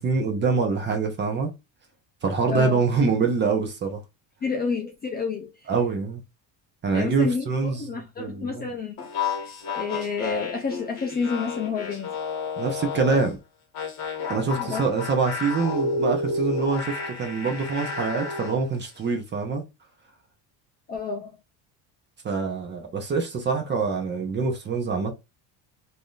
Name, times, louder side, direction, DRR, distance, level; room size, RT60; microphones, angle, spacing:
voice 1, 0.0-1.5 2.2-4.0 5.7-6.2 6.8-8.6 12.6-13.4 14.3-19.6 22.2-25.1, right 4 dB, 25° right, 0.6 m, -25 dB
voice 2, 2.5-2.8 4.4-5.5 6.9-9.0 9.4-12.1 14.6-14.8 20.9-21.3, left 5 dB, 25° left, 0.4 m, -29 dB
sound 1, 9.0-13.3 13.7-18.6, left 4 dB, 40° left, 1.0 m, -31 dB
3.4 x 2.7 x 2.3 m
cardioid pair, 165°, 45 cm